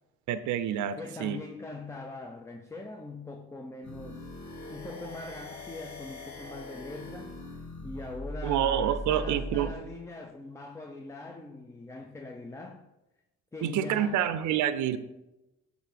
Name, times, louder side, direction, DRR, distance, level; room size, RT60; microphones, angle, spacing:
voice 1, 0.3-1.4 8.4-9.7 13.6-15.0, right 10 dB, 75° right, 12 dB, 0.5 m, -28 dB
voice 2, 1.0-4.3 4.7-7.3 7.8-12.9 13.5-14.2, left 2 dB, 10° left, 5 dB, 0.4 m, -42 dB
sound 1, 3.8-9.8, left 1 dB, 70° left, 1.1 m, -40 dB
7.5 x 2.7 x 4.9 m, 0.96 s
cardioid pair, 90°, 30 cm